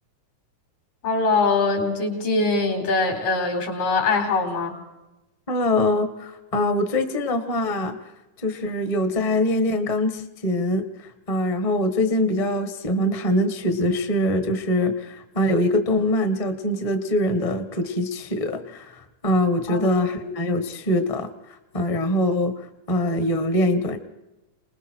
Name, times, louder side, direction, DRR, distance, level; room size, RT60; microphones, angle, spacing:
voice 1, 1.0-4.8 19.7-19.9, left 3 dB, 85° left, 3 dB, 5.4 m, -22 dB
voice 2, 5.5-7.9 8.4-21.3 21.7-22.5 22.9-24.0, left 1 dB, 45° left, 7 dB, 0.4 m, -23 dB
28.0 x 20.0 x 4.6 m, 1.0 s
omnidirectional pair, 3.7 m